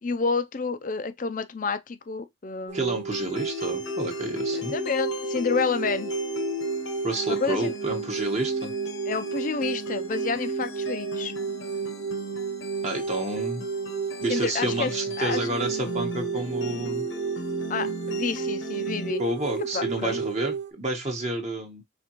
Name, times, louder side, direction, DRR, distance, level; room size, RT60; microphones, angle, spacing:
voice 1, 0.0-3.0 4.5-6.1 7.3-7.7 9.1-11.3 14.3-14.9 15.2-15.5 17.7-19.2 19.7-20.2, left 4 dB, 40° left, 0.5 m, -29 dB
voice 2, 2.7-4.7 7.0-8.7 12.8-13.6 14.2-17.1 19.2-21.8, right 2 dB, 35° right, 1.0 m, -30 dB
sound 1, 2.7-20.7, right 6 dB, 70° right, 1.2 m, -32 dB
sound 2, 3.1-19.1, left 3 dB, 75° left, 1.0 m, -37 dB
5.0 x 3.5 x 2.9 m
head